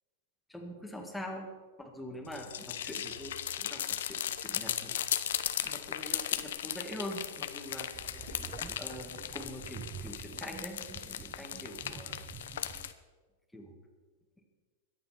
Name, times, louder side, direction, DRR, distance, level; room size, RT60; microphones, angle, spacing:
voice 1, 0.5-1.5 1.8-5.0 5.3-7.9 8.2-8.4 8.8-12.2 13.5-13.7, equal, 5° left, 1 dB, 2.0 m, -44 dB
sound 1, 2.2-12.9, left 10 dB, 85° left, 0.9 m, -37 dB
sound 2, 7.9-12.9, right 7 dB, 15° right, 0.3 m, -48 dB
22.5 x 8.7 x 4.5 m, 1.4 s
supercardioid pair, 155°, 0 cm